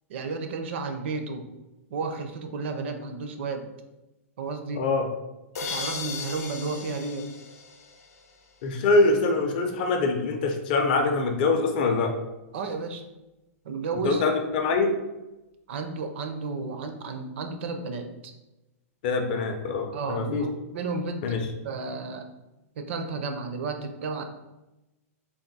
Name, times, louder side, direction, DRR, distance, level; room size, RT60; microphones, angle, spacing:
voice 1, 0.1-1.5 1.9-3.7 4.4-4.9 5.5-7.3 12.5-13.1 13.6-14.2 15.7-18.3 19.9-21.4 21.6-22.3 22.8-24.2, right 4 dB, 50° right, 6 dB, 0.5 m, -32 dB
voice 2, 4.8-5.1 8.6-12.1 14.0-15.0 19.0-20.4 21.2-21.4, left 3 dB, 35° left, 4 dB, 0.4 m, -24 dB
sound 1, 5.5-8.4, left 4 dB, 80° left, 0.6 m, -36 dB
3.5 x 2.5 x 3.9 m, 0.99 s
supercardioid pair, 175°, 8 cm